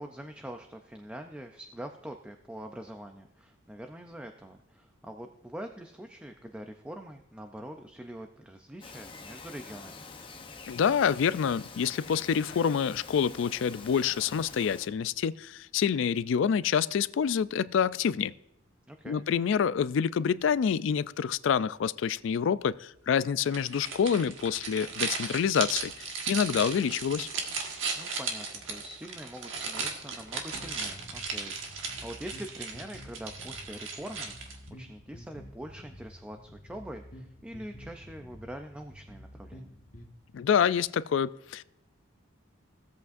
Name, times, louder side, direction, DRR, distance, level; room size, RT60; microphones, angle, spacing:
voice 1, 0.0-10.0 18.9-19.2 28.0-39.8, right 1 dB, 5° right, 0.4 m, -44 dB
Bird vocalization bird call bird song, 8.8-14.9, left 4 dB, 25° left, 0.7 m, -46 dB
voice 2, 10.7-18.3 19.1-27.3 40.3-41.6, left 7 dB, 70° left, 0.3 m, -27 dB
sound 1, 23.5-34.7, right 4 dB, 70° right, 1.5 m, -36 dB
sound 2, 30.5-40.1, equal, 40° left, 1.3 m, -49 dB
16.0 x 8.1 x 2.5 m
head